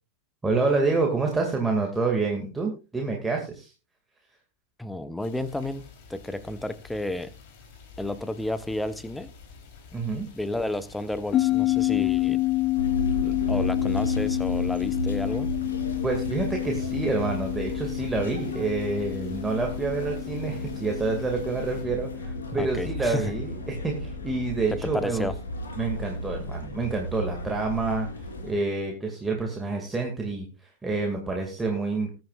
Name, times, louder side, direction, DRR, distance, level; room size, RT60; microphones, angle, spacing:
voice 1, 0.4-3.7 9.9-10.3 16.0-25.3 25.8-30.5 30.8-32.1, right 3 dB, 10° right, 1 dB, 2.2 m, -28 dB
voice 2, 4.8-7.3 8.0-9.3 10.4-12.4 13.2-15.5 22.6-23.3 24.7-25.3, left 1 dB, 5° left, 14 dB, 1.0 m, -32 dB
sound 1, 5.2-21.8, left 5 dB, 45° left, 3.7 m, -48 dB
sound 2, 11.3-24.1, left 18 dB, 30° left, 0.5 m, -29 dB
sound 3, 12.8-28.5, left 1 dB, 70° left, 3.6 m, -34 dB
20.5 x 9.2 x 2.4 m, 0.30 s
figure-of-eight pair, 90°, 0 cm